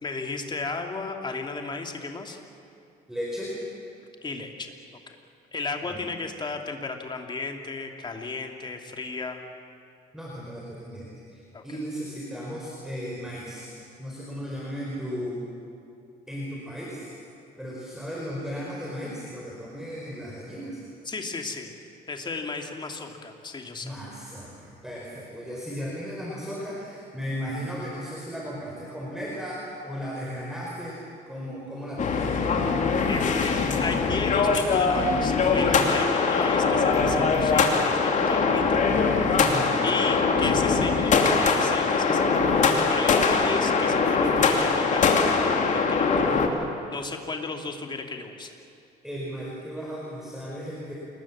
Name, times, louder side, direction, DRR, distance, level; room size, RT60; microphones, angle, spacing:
voice 1, 0.0-2.4 4.2-4.7 5.1-5.2 5.5-9.4 11.5-11.6 21.0-21.7 22.1-23.9 33.1-38.8 39.8-46.3 46.9-48.5, left 3 dB, 25° left, 3 dB, 2.7 m, -34 dB
voice 2, 3.1-3.6 5.8-6.0 10.1-15.5 16.3-17.2 17.6-20.8 23.8-32.3 39.4-39.8 49.0-51.0, equal, 5° right, -4 dB, 4.9 m, -35 dB
sound 1, 32.0-46.5, left 4 dB, 45° left, 2.8 m, -22 dB
28.5 x 21.0 x 7.5 m, 2.5 s
cardioid pair, 110°, 17 cm